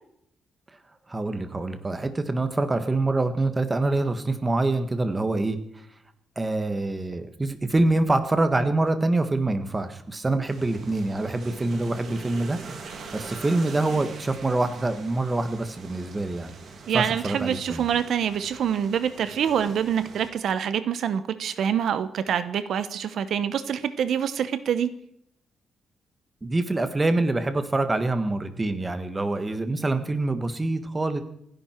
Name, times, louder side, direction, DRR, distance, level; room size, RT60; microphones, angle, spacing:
voice 1, 1.1-5.8 6.3-12.8 13.1-16.5 16.9-17.9 26.4-31.2, right 2 dB, 15° right, 1.5 m, -25 dB
sound 1, 10.5-20.3, right 4 dB, 50° right, 2.9 m, -43 dB
voice 2, 16.9-24.9, right 8 dB, 65° right, 0.9 m, -26 dB
28.0 x 10.5 x 4.6 m
cardioid pair, 155°, 0 cm